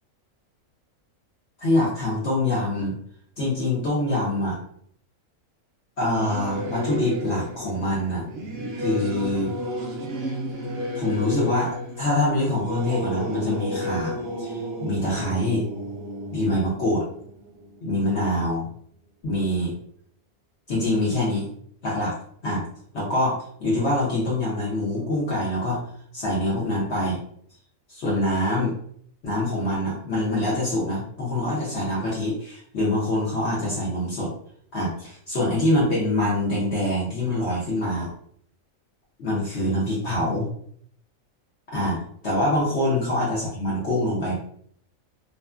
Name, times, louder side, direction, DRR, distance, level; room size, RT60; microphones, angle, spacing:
voice 1, 1.6-3.0 3.4-4.6 6.0-8.3 8.8-9.5 10.9-15.7 16.3-17.0 17.8-18.7 19.2-19.7 20.7-21.5 21.8-22.1 22.4-22.6 22.9-25.8 26.1-27.2 27.9-28.7 29.2-34.3 34.7-38.1 39.2-40.5 41.7-44.4, left 1 dB, 60° left, -6 dB, 1.0 m, -25 dB
Singing / Musical instrument, 6.1-18.0, equal, 60° right, 0.7 m, -32 dB
2.6 x 2.5 x 2.3 m, 0.64 s
omnidirectional pair, 1.4 m